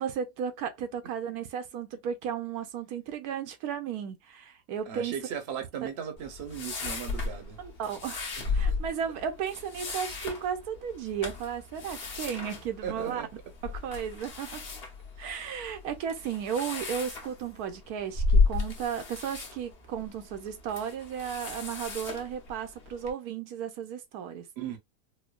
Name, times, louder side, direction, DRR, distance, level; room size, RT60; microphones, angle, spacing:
voice 1, 0.0-5.1 7.6-13.2 13.6-14.6 15.2-24.5, right 8 dB, 85° right, 1.1 m, -34 dB
voice 2, 4.9-7.6 8.4-8.8 12.8-13.3 15.2-15.4 24.6-24.8, right 8 dB, 55° right, 0.9 m, -37 dB
sound 1, 6.2-23.1, left 3 dB, 45° left, 1.1 m, -34 dB
4.3 x 2.2 x 2.3 m
omnidirectional pair, 1.6 m